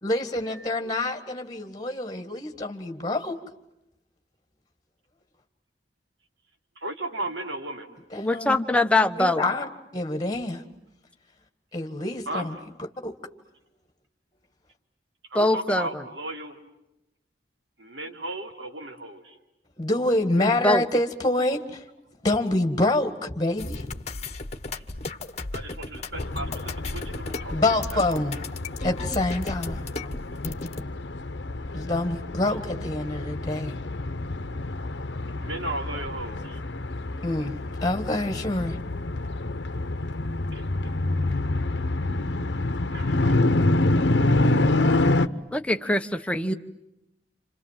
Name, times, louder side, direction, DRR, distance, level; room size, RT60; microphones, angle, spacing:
voice 1, 0.0-3.4 8.1-8.6 9.2-10.6 11.7-12.6 13.0-13.1 19.8-21.8 22.2-23.8 27.5-28.4 28.8-29.8 31.7-33.8 37.2-37.5 37.8-38.8, left 2 dB, 20° left, 1.9 m, -26 dB
voice 2, 6.8-7.9 12.3-12.5 15.3-16.6 17.8-19.3 24.7-24.8 25.5-28.2 35.4-36.6 40.5-40.6 42.9-43.3, right 2 dB, 85° right, 3.1 m, -35 dB
voice 3, 8.2-9.4 15.3-16.0 20.4-20.8 45.5-46.5, left 2 dB, 5° left, 1.0 m, -23 dB
sound 1, 23.6-30.8, left 2 dB, 40° left, 1.2 m, -35 dB
sound 2, 26.1-45.3, left 2 dB, 75° left, 1.0 m, -27 dB
29.0 x 27.5 x 7.5 m
head